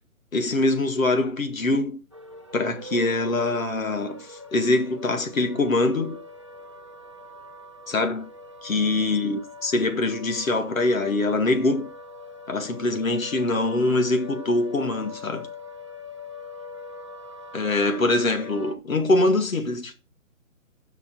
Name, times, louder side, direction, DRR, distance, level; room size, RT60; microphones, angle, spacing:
voice 1, 0.3-2.0 2.5-6.2 7.9-8.3 8.6-11.9 12.5-15.5 17.5-19.9, left 2 dB, 75° left, 2.3 m, -24 dB
sound 1, 2.1-18.8, left 2 dB, 25° right, 0.4 m, -42 dB
7.5 x 5.9 x 5.4 m
figure-of-eight pair, 150°, 42 cm